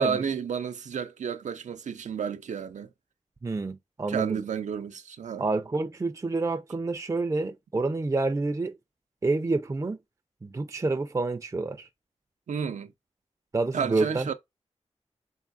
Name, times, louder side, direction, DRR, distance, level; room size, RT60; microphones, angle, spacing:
voice 1, 0.0-2.9 4.1-5.4 12.5-12.9 13.7-14.3, right 7 dB, 90° right, 0.5 m, -31 dB
voice 2, 3.4-4.4 5.4-8.8 9.2-10.0 10.4-11.9 13.5-14.3, right 3 dB, 25° right, 0.4 m, -28 dB
3.8 x 3.6 x 2.4 m
cardioid pair, 60°, 12 cm